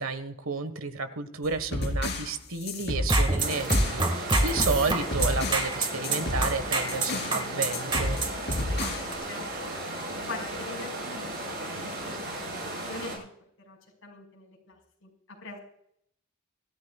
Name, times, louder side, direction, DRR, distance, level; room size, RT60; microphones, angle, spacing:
voice 1, 0.0-8.2, right 4 dB, 80° right, 11 dB, 1.4 m, -32 dB
sound 1, 1.4-4.0 4.3-5.7 6.0-7.4 7.7-9.1, left 2 dB, 50° left, 3.8 m, -31 dB
sound 2, 3.0-9.1, right 2 dB, 25° right, 1.8 m, -26 dB
sound 3, 3.4-13.2, right 1 dB, 50° right, 7.0 m, -35 dB
voice 2, 9.1-9.8 10.3-11.5 11.9-12.5 12.9-13.2 13.7-15.6, left 3 dB, 75° left, 0 dB, 5.3 m, -43 dB
24.0 x 14.0 x 2.4 m, 0.69 s
head